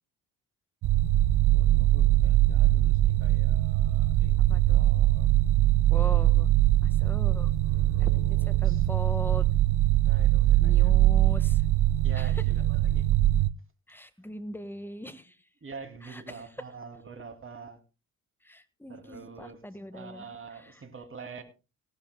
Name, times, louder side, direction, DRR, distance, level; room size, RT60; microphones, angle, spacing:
sound 1, 0.8-13.5, right 14 dB, 50° right, 0.6 m, -22 dB
voice 1, 1.4-5.3 7.4-8.9 10.0-10.9 12.0-13.1 15.6-17.8 18.9-19.6 19.9-21.4, right 4 dB, 30° right, 2.7 m, -46 dB
voice 2, 4.4-4.8 5.9-6.5 6.8-7.5 8.0-9.5 10.6-11.6 12.2-12.4 13.9-15.4 16.0-16.4 18.4-20.3 20.6-20.7, left 1 dB, 5° left, 1.5 m, -40 dB
18.5 x 12.0 x 2.2 m
hypercardioid pair, 60°, 40 cm